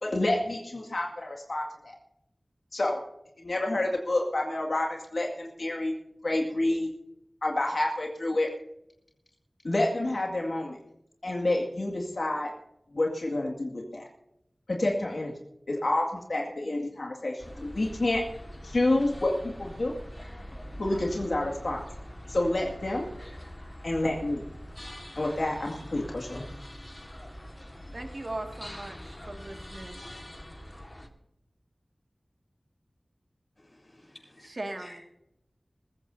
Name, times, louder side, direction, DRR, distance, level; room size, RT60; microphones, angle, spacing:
voice 1, 0.0-2.0 2.7-3.0 3.4-5.9 6.2-6.9 7.4-8.5 9.6-10.8 11.2-12.5 12.9-14.1 14.7-15.3 15.7-18.2 18.6-19.9 20.8-21.8 22.3-23.1 23.8-24.4 25.2-26.4, left 1 dB, 80° left, 0 dB, 2.1 m, -28 dB
sound 1, 17.4-31.1, equal, 25° left, 1.7 m, -43 dB
voice 2, 27.9-30.0 34.4-35.0, right 2 dB, 55° right, 3 dB, 2.0 m, -39 dB
voice 3, 33.6-35.0, left 1 dB, 50° left, -1 dB, 7.1 m, -53 dB
21.0 x 15.5 x 2.7 m, 0.81 s
wide cardioid pair, 65°, 0 cm